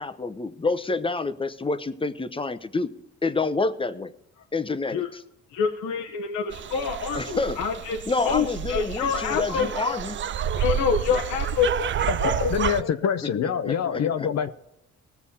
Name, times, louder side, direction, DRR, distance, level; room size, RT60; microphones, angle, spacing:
voice 1, 0.0-2.9 3.2-4.1 4.5-5.1 7.2-7.6 8.1-10.2 13.4-14.3, left 3 dB, 15° left, 12 dB, 0.8 m, -28 dB
voice 2, 5.5-8.0 8.2-10.0 10.6-12.5 12.8-12.9, left 6 dB, 80° left, 2 dB, 1.1 m, -27 dB
sound 1, 6.5-12.8, right 9 dB, 40° right, 0.5 m, -29 dB
voice 3, 12.1-14.5, left 8 dB, 60° left, 9 dB, 0.8 m, -25 dB
19.0 x 7.0 x 4.2 m, 0.81 s
cardioid pair, 90°, 30 cm